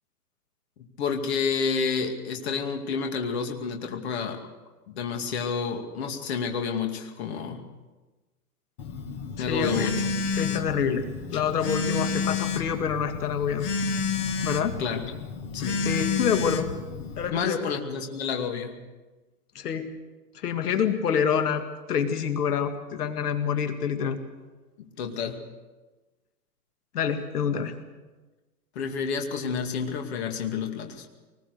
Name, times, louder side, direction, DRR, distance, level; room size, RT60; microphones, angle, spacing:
voice 1, 0.8-4.4 4.9-7.7 9.4-10.2 14.8-15.0 15.5-15.8 17.3-18.8 24.8-25.4 28.7-31.1, left 5 dB, 45° left, 4 dB, 2.4 m, -30 dB
Telephone, 8.8-17.3, left 5 dB, 20° left, 0.8 m, -30 dB
voice 2, 9.4-9.9 10.4-13.7 14.4-14.7 15.8-16.7 17.2-17.6 19.6-19.9 20.3-21.6 21.9-24.2 26.9-27.7, left 7 dB, 80° left, 7 dB, 2.0 m, -27 dB
24.0 x 20.0 x 6.6 m, 1.2 s
hypercardioid pair, 170°, 46 cm